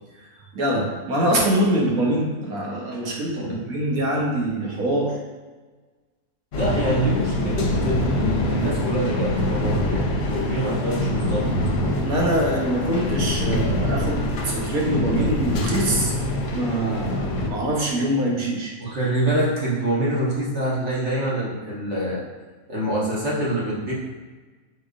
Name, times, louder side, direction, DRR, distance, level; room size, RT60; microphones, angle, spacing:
voice 1, 0.5-5.2 12.0-16.1 16.5-18.7, right 1 dB, 80° right, -2 dB, 1.4 m, -24 dB
sound 1, 6.5-17.5, left 1 dB, 55° left, 0.8 m, -24 dB
voice 2, 6.5-11.5 18.8-22.2 22.7-23.9, right 1 dB, 55° right, -7 dB, 1.4 m, -25 dB
4.9 x 4.4 x 2.5 m, 1.3 s
omnidirectional pair, 1.5 m